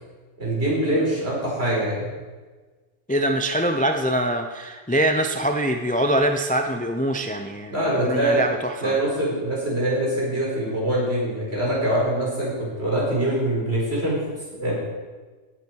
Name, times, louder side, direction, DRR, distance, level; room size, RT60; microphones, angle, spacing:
voice 1, 0.4-2.1 7.7-8.4 8.8-14.2 14.5-14.7, right 1 dB, 50° right, -5 dB, 5.3 m, -24 dB
voice 2, 3.1-8.9, right 1 dB, 10° left, 5 dB, 0.5 m, -24 dB
17.0 x 11.0 x 4.7 m, 1.3 s
omnidirectional pair, 1.4 m